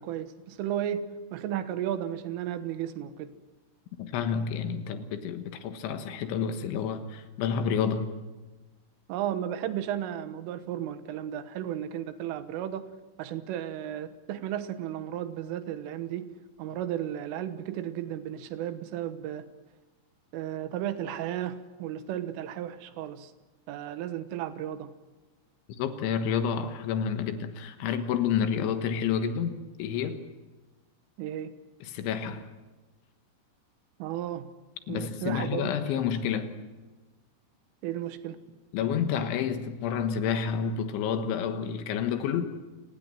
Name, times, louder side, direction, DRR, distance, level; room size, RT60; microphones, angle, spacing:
voice 1, 0.0-3.3 9.1-12.9 13.2-16.3 16.6-19.5 20.3-23.3 23.7-24.9 31.2-31.5 34.0-34.5 34.9-35.7 37.8-38.4, right 11 dB, 90° right, 11 dB, 3.8 m, -34 dB
voice 2, 4.0-8.1 25.8-29.5 29.8-30.2 31.8-32.4 34.9-36.5 38.7-42.5, left 7 dB, 75° left, 8 dB, 3.7 m, -29 dB
29.5 x 19.5 x 7.7 m, 1.2 s
omnidirectional pair, 5.6 m